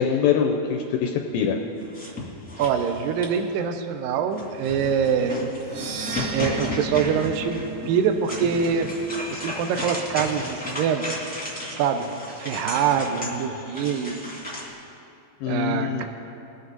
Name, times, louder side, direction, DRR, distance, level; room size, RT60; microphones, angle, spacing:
voice 1, 0.0-1.6 15.4-16.0, left 7 dB, 85° left, 2 dB, 2.1 m, -23 dB
sound 1, 1.8-3.5 4.3-14.7, left 2 dB, 5° left, 1.0 m, -34 dB
voice 2, 2.6-5.5 6.3-8.9 9.3-11.1 11.7-12.1 12.4-14.3 15.5-16.0, right 7 dB, 90° right, 7 dB, 2.0 m, -24 dB
sound 2, 5.6-9.9, right 6 dB, 70° right, 2.3 m, -37 dB
21.5 x 8.1 x 4.0 m, 2.7 s
omnidirectional pair, 4.8 m